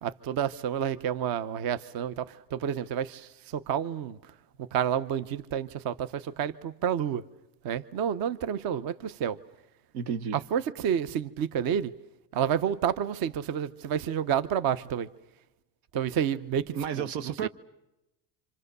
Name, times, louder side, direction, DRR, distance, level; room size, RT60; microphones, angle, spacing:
voice 1, 0.0-7.2 7.6-9.4 10.3-11.9 12.3-15.1 15.9-17.5, right 8 dB, 45° right, 1.0 m, -30 dB
voice 2, 9.9-10.4 16.7-17.5, right 7 dB, 80° right, 1.4 m, -32 dB
28.0 x 26.5 x 6.8 m
supercardioid pair, 120°, 49 cm